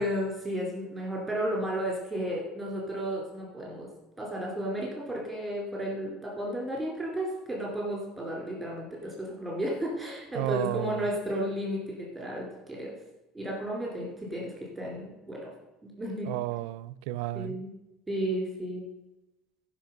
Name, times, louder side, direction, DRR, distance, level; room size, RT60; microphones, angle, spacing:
voice 1, 0.0-3.9 4.2-13.0 13.3-15.5 15.8-16.3 17.3-17.7 18.1-18.8, equal, 5° right, 2.7 m, -33 dB
voice 2, 10.3-11.1 16.2-17.6, right 15 dB, 75° right, 0.4 m, -32 dB
13.5 x 5.6 x 6.6 m
cardioid pair, 180°, 0 cm